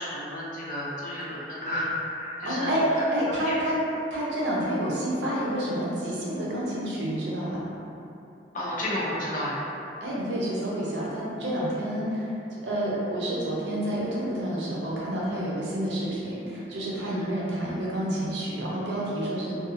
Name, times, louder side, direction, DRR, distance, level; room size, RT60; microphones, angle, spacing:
voice 1, 0.0-2.7 3.4-3.6 8.5-9.6 15.2-15.3 17.0-17.3 19.4-19.5, left 1 dB, 45° left, -7 dB, 0.6 m, -32 dB
voice 2, 2.4-3.8 4.1-7.6 10.0-19.6, right 1 dB, 80° right, -6 dB, 0.7 m, -29 dB
2.6 x 2.3 x 2.6 m, 2.8 s
head